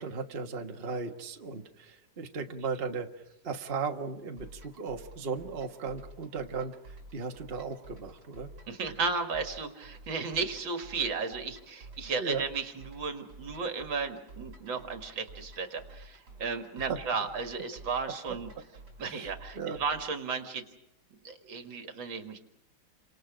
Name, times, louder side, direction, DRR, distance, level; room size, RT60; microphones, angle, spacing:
voice 1, 0.0-8.5 12.0-12.4 16.9-17.0 18.3-18.4 19.0-19.8, right 5 dB, 30° right, 4 dB, 1.5 m, -36 dB
sound 1, 4.4-20.2, right 2 dB, 55° right, 4.9 m, -51 dB
voice 2, 8.7-18.5 19.0-20.6 21.2-22.4, right 4 dB, 75° right, 6 dB, 2.7 m, -34 dB
29.0 x 26.5 x 5.1 m, 0.83 s
omnidirectional pair, 2.1 m